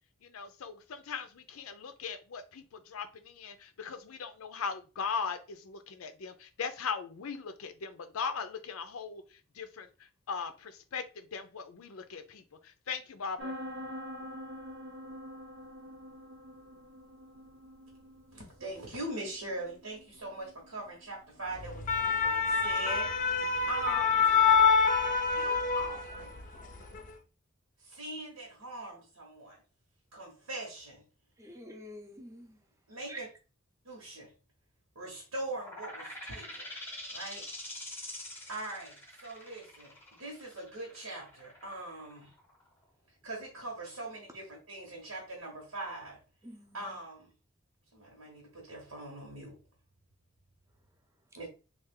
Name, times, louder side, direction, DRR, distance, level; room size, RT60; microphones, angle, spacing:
voice 1, 0.2-9.2 9.5-13.6, left 5 dB, 85° left, 0.5 m, -39 dB
sound 1, 13.4-24.9, equal, 70° right, 0.8 m, -47 dB
voice 2, 18.3-24.3 25.3-26.4 27.8-29.6 30.1-31.0 32.9-33.3 33.8-34.3 34.9-36.7 37.1-37.5 38.5-42.3 43.2-46.2 46.7-47.3 47.9-49.6 51.3-51.5, right 2 dB, 85° right, 1.1 m, -42 dB
sound 2, 21.6-26.4 26.7-27.0, left 6 dB, 40° left, 0.5 m, -26 dB
voice 3, 31.4-32.6 33.1-33.2 46.4-46.9, equal, 15° right, 0.6 m, -47 dB
sound 3, 35.5-42.8, left 1 dB, 10° left, 0.9 m, -45 dB
3.3 x 2.4 x 3.6 m
head